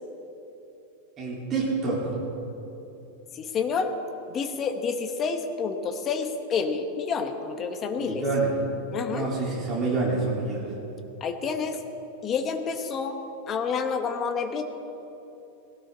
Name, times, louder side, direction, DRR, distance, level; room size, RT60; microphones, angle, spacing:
voice 1, 1.2-2.1 8.0-8.6 9.1-10.7, right 3 dB, 20° right, -6 dB, 3.8 m, -27 dB
voice 2, 3.3-3.9 4.3-8.2 8.9-9.3 11.2-11.8 12.2-13.2 13.5-14.6, left 5 dB, 20° left, 6 dB, 1.0 m, -29 dB
19.5 x 17.5 x 3.9 m, 3.0 s
supercardioid pair, 175°, 0 cm